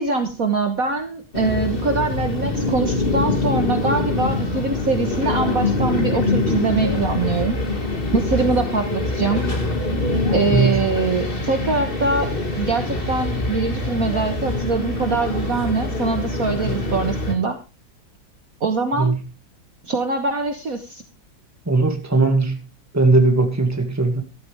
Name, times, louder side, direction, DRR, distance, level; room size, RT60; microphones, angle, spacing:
voice 1, 0.0-7.6 8.1-9.5 10.3-12.3 12.6-17.6 18.6-19.2 19.8-21.0, right 4 dB, 50° right, 1.6 m, -23 dB
sound 1, 1.3-17.3, left 2 dB, 30° left, 2.3 m, -24 dB
voice 2, 10.5-10.8 19.0-19.2 21.7-22.6 22.9-24.2, right 3 dB, 10° right, 2.0 m, -18 dB
14.5 x 12.5 x 3.4 m
omnidirectional pair, 2.1 m